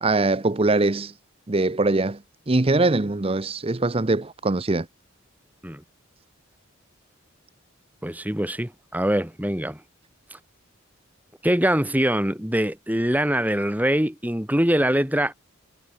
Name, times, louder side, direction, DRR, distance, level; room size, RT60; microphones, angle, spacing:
voice 1, 0.0-1.1 1.5-2.2 2.5-4.9, right 2 dB, 25° right, 0.7 m, -22 dB
voice 2, 8.0-9.8 11.4-15.4, right 1 dB, 10° right, 1.9 m, -23 dB
head